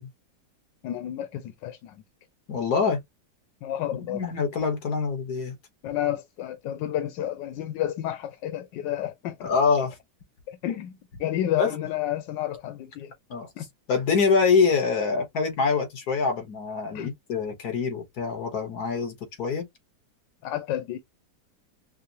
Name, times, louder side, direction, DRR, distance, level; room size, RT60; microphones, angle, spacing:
voice 1, 0.8-2.0 3.6-4.2 5.8-9.5 10.5-13.1 13.6-13.7 16.9-17.1 20.4-21.0, left 12 dB, 90° left, 1.3 m, -30 dB
voice 2, 2.5-3.0 4.1-5.5 9.4-9.9 11.6-11.8 13.3-13.5 13.9-19.6, left 5 dB, 60° left, 1.6 m, -25 dB
5.6 x 2.0 x 2.7 m
omnidirectional pair, 1.9 m